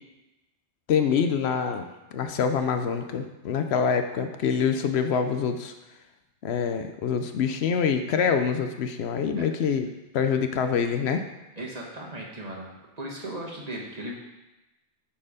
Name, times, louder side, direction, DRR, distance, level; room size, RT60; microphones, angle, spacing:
voice 1, 0.9-1.9 2.1-5.7 6.4-9.9 10.1-11.3, left 6 dB, 70° left, 7 dB, 0.8 m, -25 dB
voice 2, 11.6-12.7 13.0-14.1, right 1 dB, 35° right, -2 dB, 1.4 m, -36 dB
8.8 x 4.3 x 5.0 m, 1.0 s
omnidirectional pair, 1.2 m